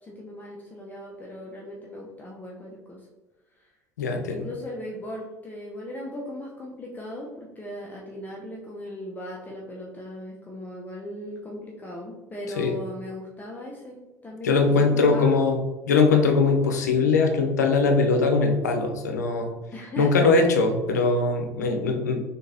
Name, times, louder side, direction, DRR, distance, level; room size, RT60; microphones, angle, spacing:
voice 1, 0.0-3.1 3.5-3.7 4.3-15.4 19.7-20.3, left 1 dB, 20° left, -3 dB, 0.7 m, -38 dB
voice 2, 4.0-4.5 12.6-12.7 14.4-15.6 15.9-19.5 20.0-22.2, left 4 dB, 85° left, 3 dB, 0.6 m, -21 dB
3.8 x 3.5 x 2.7 m, 1.2 s
hypercardioid pair, 70°, 9 cm